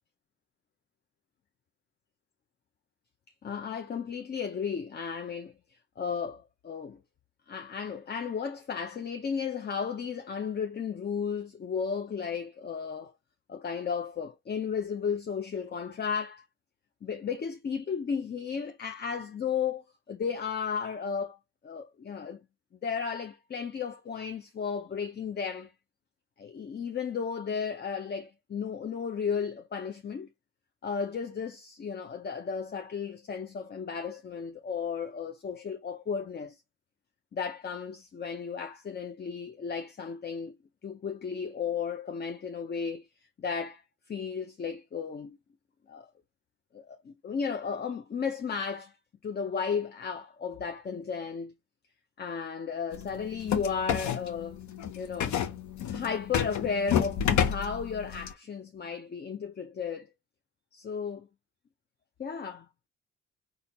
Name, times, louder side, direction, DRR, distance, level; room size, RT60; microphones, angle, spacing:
voice 1, 3.4-7.0 7.5-13.1 13.5-16.4 17.0-21.4 21.6-22.4 22.8-25.7 26.4-30.3 30.8-36.6 37.3-40.6 40.8-43.1 43.4-45.4 45.9-46.1 46.7-48.9 49.2-51.5 52.2-54.6 54.9-55.4 55.9-60.1 60.7-61.3 62.2-62.7, left 6 dB, 35° left, 0.6 m, -34 dB
sound 1, 52.9-58.3, left 8 dB, 70° left, 0.9 m, -30 dB
4.3 x 2.6 x 4.0 m
cardioid pair, 90°, 30 cm